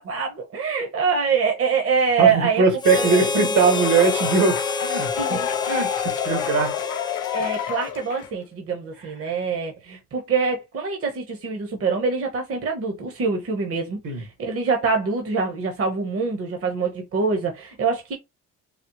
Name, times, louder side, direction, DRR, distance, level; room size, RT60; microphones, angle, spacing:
voice 1, 0.0-2.6 2.9-3.5 5.2-5.5 7.3-18.1, right 5 dB, 50° right, 1.0 m, -25 dB
voice 2, 2.2-5.4 5.7-6.7 9.2-9.3 14.0-14.2, right 4 dB, 75° right, 1.7 m, -21 dB
Harmonica, 2.8-8.3, left 3 dB, 15° left, 0.3 m, -28 dB
sound 1, 3.4-8.4, left 12 dB, 90° left, 0.5 m, -29 dB
4.1 x 2.0 x 3.0 m
cardioid pair, 90°, 30 cm